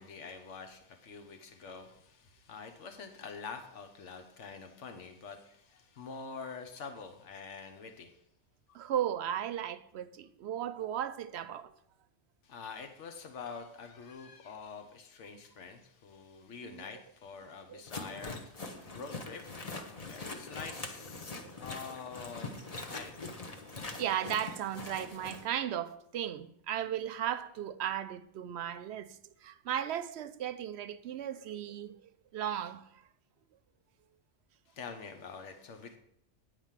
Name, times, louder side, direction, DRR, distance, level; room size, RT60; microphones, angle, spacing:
voice 1, 0.0-8.2 8.7-8.8 12.4-23.1 34.7-36.0, left 5 dB, 80° left, 1.3 m, -46 dB
voice 2, 8.7-11.7 16.6-16.8 17.7-17.8 21.4-21.6 24.0-32.9, right 10 dB, 70° right, 0.8 m, -36 dB
sound 1, 17.9-25.4, left 3 dB, 35° left, 0.9 m, -43 dB
9.4 x 5.1 x 7.4 m
omnidirectional pair, 1.2 m